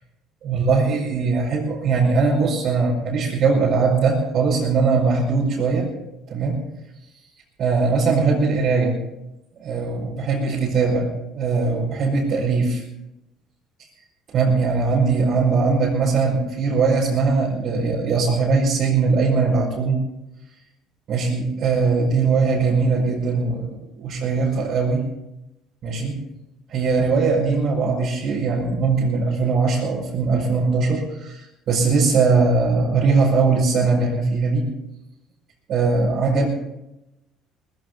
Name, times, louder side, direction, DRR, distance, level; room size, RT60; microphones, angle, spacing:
voice 1, 0.4-5.9 6.3-6.6 7.6-9.0 9.6-12.8 14.3-20.0 21.1-23.7 24.0-25.0 25.8-26.2 26.7-34.7 35.7-36.5, right 4 dB, 55° right, -6 dB, 5.3 m, -20 dB
20.0 x 15.5 x 4.0 m, 0.90 s
cardioid pair, 120°, 0 cm